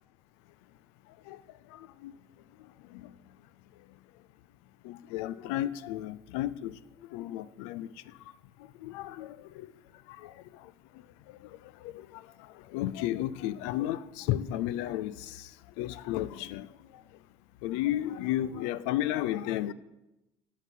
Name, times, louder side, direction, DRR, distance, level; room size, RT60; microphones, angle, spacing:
voice 1, 4.8-6.7 7.1-7.9 8.8-9.7 10.2-10.3 11.8-12.2 12.7-15.4 15.8-16.7 17.6-19.7, left 13 dB, 70° left, 0.4 m, -33 dB
10.5 x 4.1 x 7.4 m
hypercardioid pair, 60°, 15 cm